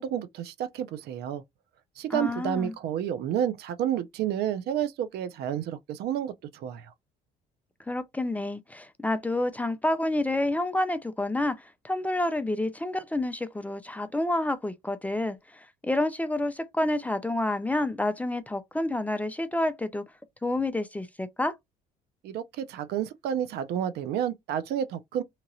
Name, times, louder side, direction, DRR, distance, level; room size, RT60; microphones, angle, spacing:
voice 1, 0.0-1.4 2.0-6.9 22.2-25.2, right 10 dB, 70° right, 0.5 m, -30 dB
voice 2, 2.1-2.7 7.9-20.0 20.4-21.5, left 1 dB, 10° left, 0.4 m, -29 dB
2.9 x 2.8 x 2.6 m
cardioid pair, 110°, 17 cm